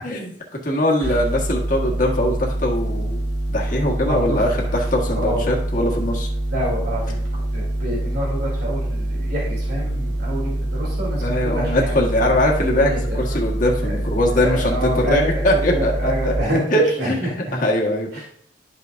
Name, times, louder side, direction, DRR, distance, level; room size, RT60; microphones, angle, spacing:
voice 1, 0.0-3.2 3.5-6.3 11.2-16.3 16.7-18.2, left 1 dB, 50° left, -1 dB, 1.5 m, -21 dB
sound 1, 1.0-16.4, right 1 dB, 80° right, 1.2 m, -25 dB
voice 2, 4.1-4.4 5.1-5.4 6.5-7.2 7.5-12.0 12.7-13.4 13.8-14.0 14.3-17.3 18.1-18.2, equal, 65° right, -5 dB, 2.9 m, -27 dB
11.5 x 5.9 x 2.6 m, 0.69 s
head